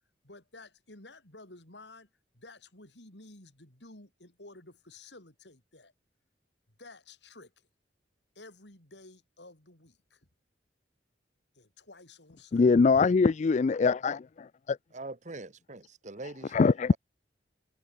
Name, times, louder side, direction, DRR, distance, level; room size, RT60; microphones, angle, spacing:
voice 1, 0.2-2.1 2.3-5.9 6.8-7.7 8.4-10.3 11.5-12.6, left 2 dB, 75° left, 5.6 m, -52 dB
voice 2, 12.5-14.8 16.5-16.9, left 4 dB, 40° left, 0.4 m, -23 dB
voice 3, 14.9-16.5 16.9-17.0, right 2 dB, 45° right, 1.6 m, -42 dB
head